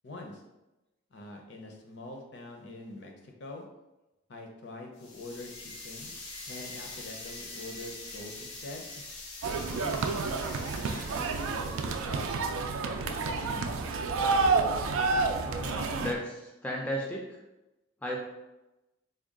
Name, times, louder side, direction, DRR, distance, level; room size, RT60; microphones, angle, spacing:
voice 1, 0.0-0.4 1.1-3.6 4.3-6.1 6.5-8.9 9.5-10.0 10.9-12.3 12.8-13.7, left 2 dB, 55° left, 2 dB, 0.6 m, -44 dB
sound 1, 5.0-12.2, left 3 dB, 90° left, 0.9 m, -44 dB
sound 2, 9.4-16.1, right 4 dB, 85° right, 0.4 m, -29 dB
voice 2, 15.4-17.3 18.0-18.2, equal, 5° left, -2 dB, 0.4 m, -35 dB
3.6 x 2.2 x 3.6 m, 0.99 s
head